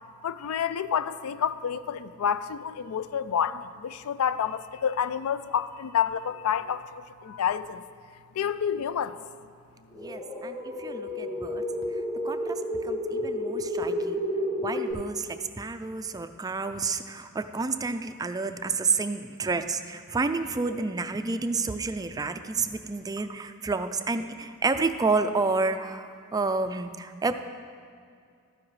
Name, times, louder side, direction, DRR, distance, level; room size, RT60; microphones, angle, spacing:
voice 1, 0.2-7.8 8.4-9.2, left 8 dB, 75° left, 15 dB, 0.4 m, -29 dB
sound 1, 9.9-14.9, equal, 15° left, 1.6 m, -31 dB
voice 2, 10.0-11.6 12.2-14.2 14.6-27.3, right 4 dB, 15° right, 9 dB, 0.3 m, -30 dB
13.0 x 9.7 x 3.2 m, 2.2 s
head